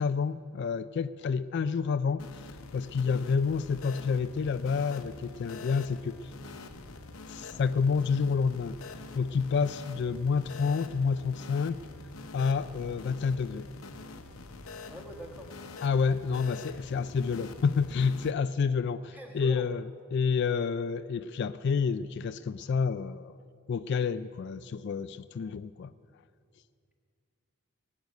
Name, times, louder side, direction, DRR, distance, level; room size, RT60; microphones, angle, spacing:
voice 1, 0.0-6.3 7.3-8.8 9.1-11.8 12.3-13.7 15.8-19.8 20.1-23.4 23.7-25.9, left 5 dB, 55° left, 13 dB, 0.3 m, -29 dB
sound 1, 2.2-18.3, left 3 dB, 80° left, 0.9 m, -46 dB
voice 2, 14.9-15.5 19.1-19.7, right 1 dB, 10° right, 1 dB, 1.7 m, -44 dB
19.5 x 6.8 x 9.2 m, 2.3 s
head